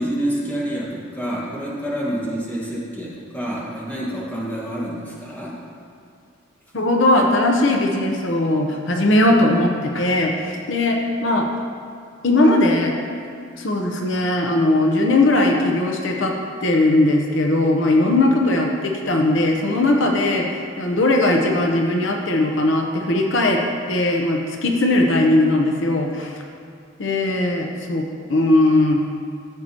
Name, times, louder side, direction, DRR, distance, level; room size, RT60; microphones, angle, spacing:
voice 1, 0.0-5.5, equal, 10° left, -6 dB, 1.6 m, -27 dB
voice 2, 6.7-11.5 12.2-12.9 13.6-16.3 16.6-23.6 23.9-26.4 27.0-29.0, left 2 dB, 70° left, 2 dB, 0.9 m, -19 dB
13.5 x 7.7 x 3.0 m, 2.2 s
head